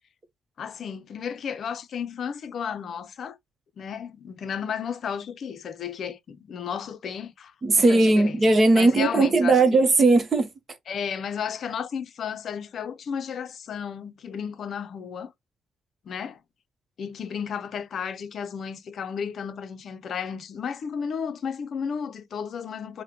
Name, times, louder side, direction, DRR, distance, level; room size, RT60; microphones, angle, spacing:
voice 1, 0.6-3.4 3.8-8.4 8.7-9.6 10.9-15.3 16.0-16.4 17.0-23.0, left 7 dB, 60° left, 0.5 m, -33 dB
voice 2, 7.6-10.5, right 3 dB, 35° right, 0.8 m, -18 dB
4.8 x 2.1 x 2.8 m
cardioid pair, 90°, 0 cm